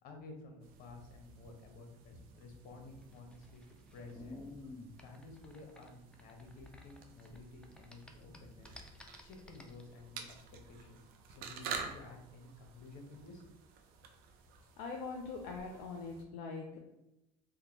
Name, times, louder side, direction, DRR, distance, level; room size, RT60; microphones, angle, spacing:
voice 1, 0.0-3.6 3.9-4.4 5.0-8.7 9.2-11.0 11.4-13.4, left 2 dB, 55° left, 2 dB, 0.8 m, -52 dB
sound 1, 0.6-16.3, right 5 dB, 60° right, 0.5 m, -50 dB
sound 2, 3.0-7.4 7.6-9.8, left 2 dB, 5° left, 0.3 m, -52 dB
voice 2, 14.8-16.8, left 4 dB, 75° left, 1 dB, 0.4 m, -42 dB
3.5 x 2.1 x 2.8 m, 0.90 s
supercardioid pair, 100°, 17 cm